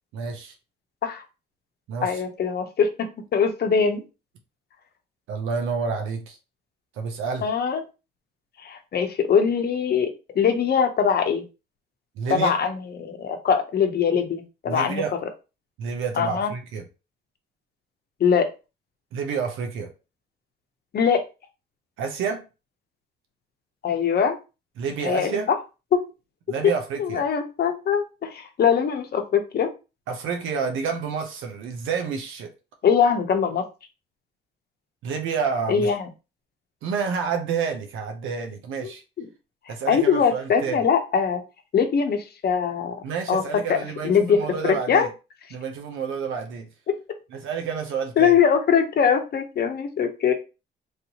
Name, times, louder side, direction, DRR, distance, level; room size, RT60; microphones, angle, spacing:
voice 1, 0.1-0.5 1.9-2.2 5.3-6.4 6.9-7.5 12.2-12.5 14.7-15.1 15.8-16.8 19.1-19.9 22.0-22.4 24.8-25.5 26.5-27.2 30.1-32.5 35.0-35.9 36.8-39.0 39.7-40.9 43.0-45.1 45.5-46.7 47.3-48.3, right 6 dB, 85° right, 0.7 m, -29 dB
voice 2, 2.0-4.0 7.4-7.8 8.6-10.1 10.3-11.4 12.3-15.0 16.1-16.5 18.2-18.5 20.9-21.2 23.8-24.4 25.0-25.4 25.9-26.0 27.0-29.7 32.8-33.6 35.7-36.1 39.2-39.3 39.9-41.4 41.7-42.9 43.3-43.4 43.7-43.8 44.0-44.4 44.6-45.1 48.2-50.3, left 7 dB, 55° left, 0.8 m, -22 dB
3.2 x 2.7 x 2.9 m
cardioid pair, 90°, 20 cm